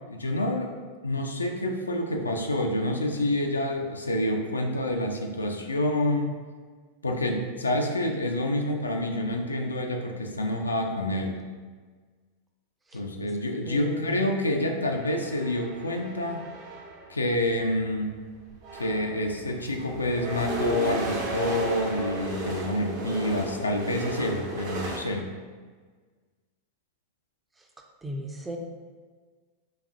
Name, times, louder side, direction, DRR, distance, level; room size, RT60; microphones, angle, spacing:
voice 1, 0.1-0.7 1.0-6.3 7.0-11.4 12.9-16.4 17.1-18.2 18.7-25.3, left 1 dB, 80° left, 2 dB, 0.3 m, -28 dB
voice 2, 13.7-14.2 28.0-28.6, equal, 10° right, 1 dB, 0.4 m, -35 dB
sound 1, 14.9-17.1 18.1-18.2 18.5-25.0, right 2 dB, 50° right, 0.6 m, -34 dB
4.0 x 2.4 x 2.5 m, 1.5 s
figure-of-eight pair, 90°, 0 cm